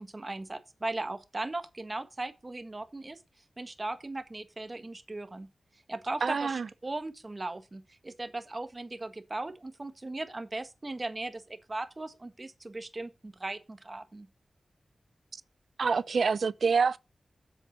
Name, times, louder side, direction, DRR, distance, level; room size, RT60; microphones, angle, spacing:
voice 1, 0.0-3.2 3.6-5.5 5.9-14.3, right 2 dB, 40° right, 1.6 m, -38 dB
voice 2, 6.2-6.7 15.8-17.0, right 5 dB, 80° right, 0.5 m, -26 dB
8.0 x 7.4 x 5.3 m
cardioid pair, 40°, 0 cm